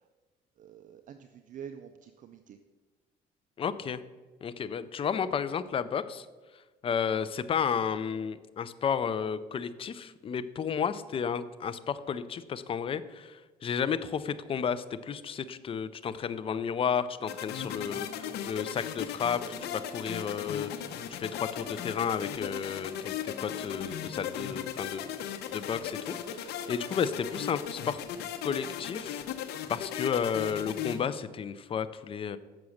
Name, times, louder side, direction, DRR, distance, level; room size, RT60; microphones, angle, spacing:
voice 1, 0.6-2.6, right 8 dB, 50° right, 8 dB, 0.5 m, -47 dB
voice 2, 3.6-4.0 4.4-6.3 6.8-25.1 25.5-28.0 28.4-29.2 29.7-32.4, left 7 dB, 35° left, 13 dB, 0.5 m, -32 dB
sound 1, 17.3-31.0, left 9 dB, 75° left, 0.8 m, -37 dB
sound 2, 17.3-25.5, left 2 dB, 15° left, 1.8 m, -52 dB
7.1 x 6.0 x 6.4 m, 1.3 s
cardioid pair, 110°, 17 cm